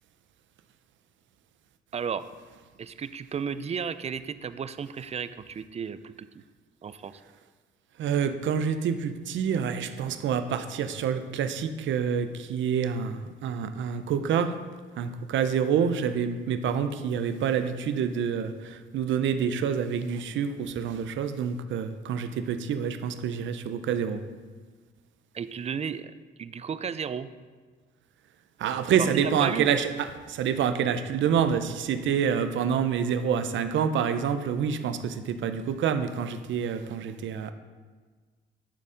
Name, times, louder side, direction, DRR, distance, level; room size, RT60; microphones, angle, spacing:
voice 1, 1.9-2.3 2.8-6.3 6.8-7.2 25.3-26.1 26.4-27.3 29.0-29.7, right 6 dB, 35° right, 13 dB, 0.4 m, -33 dB
voice 2, 8.0-14.6 15.0-24.2 28.6-37.5, right 7 dB, 70° right, 10 dB, 0.7 m, -27 dB
10.5 x 4.3 x 5.0 m, 1.5 s
cardioid pair, 90°, 20 cm